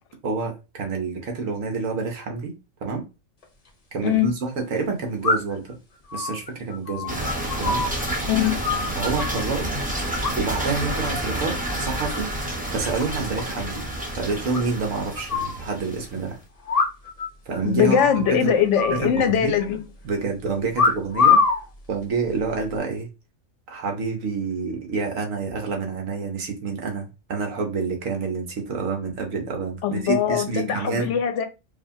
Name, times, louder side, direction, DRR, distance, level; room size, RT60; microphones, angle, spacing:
voice 1, 0.2-2.5 2.8-3.0 3.9-5.8 6.1-7.2 7.6-7.8 8.9-9.7 10.4-12.3 12.7-13.8 14.1-16.4 17.5-18.0 18.3-18.5 18.9-19.5 20.0-21.4 21.9-23.1 23.7-31.2, right 4 dB, 70° right, 1.3 m, -28 dB
sound 1, 3.4-3.5 5.2-5.7 6.1-8.1 8.4-9.4 10.2-10.7 11.0-11.4 11.8-12.4 12.6-12.7 13.0-13.1 13.4-13.5 13.8-13.9 14.5-15.6 16.6-17.3 17.5-17.6 17.9-18.3 18.7-19.7 20.7-21.6 22.4-22.7, left 4 dB, 35° left, 0.7 m, -24 dB
sound 2, 7.1-16.3, right 1 dB, 5° right, 0.7 m, -29 dB
voice 2, 8.3-8.6 17.6-19.8 29.8-31.4, left 8 dB, 65° left, 1.0 m, -21 dB
4.9 x 2.5 x 2.7 m
omnidirectional pair, 1.4 m